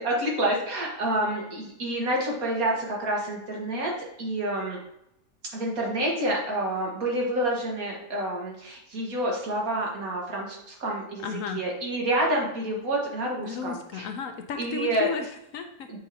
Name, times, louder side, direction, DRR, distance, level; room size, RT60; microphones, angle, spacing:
voice 1, 0.0-3.9 4.2-4.8 5.5-11.2 11.5-14.0 14.6-15.1, right 1 dB, 70° right, -2 dB, 2.0 m, -28 dB
voice 2, 11.2-11.6 13.4-15.9, left 6 dB, 65° left, 6 dB, 1.0 m, -34 dB
7.7 x 4.9 x 2.8 m, 0.78 s
omnidirectional pair, 1.6 m